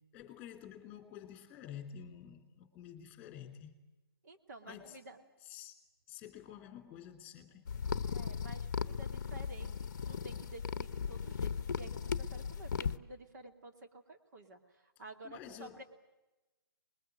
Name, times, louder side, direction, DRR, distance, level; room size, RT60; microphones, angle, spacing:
voice 1, 0.1-3.8 4.7-5.0 5.5-5.8 6.1-7.6 15.2-15.8, left 9 dB, 15° left, 3.0 m, -50 dB
voice 2, 4.2-5.2 8.1-15.8, right 2 dB, 45° right, 2.7 m, -52 dB
sound 1, 7.7-13.0, left 6 dB, 45° left, 0.9 m, -37 dB
25.5 x 21.0 x 9.3 m
figure-of-eight pair, 140°, 13 cm